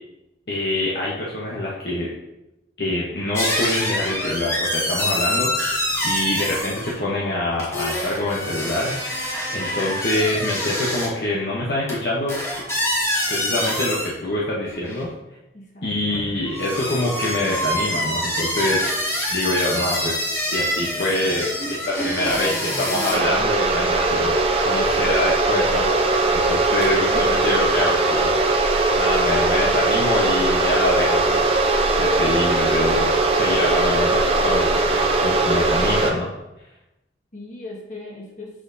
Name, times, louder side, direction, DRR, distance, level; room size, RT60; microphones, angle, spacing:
voice 1, 0.5-2.1 2.8-12.5 13.3-15.1 15.8-20.2 20.5-21.5 22.0-22.5 22.8-31.5 32.0-33.1 33.4-36.3, left 1 dB, 60° left, -5 dB, 1.0 m, -25 dB
sound 1, 3.3-7.0 7.5-11.1 11.9-12.0 12.3-14.1 14.6-15.0 16.1-23.1, left 1 dB, 15° left, 1.2 m, -26 dB
voice 2, 15.5-16.0 21.6-23.9 37.3-38.5, right 1 dB, 40° left, -2 dB, 1.5 m, -36 dB
sound 2, 23.1-36.1, right 2 dB, 30° right, 0.6 m, -20 dB
6.2 x 5.7 x 2.7 m, 0.93 s
head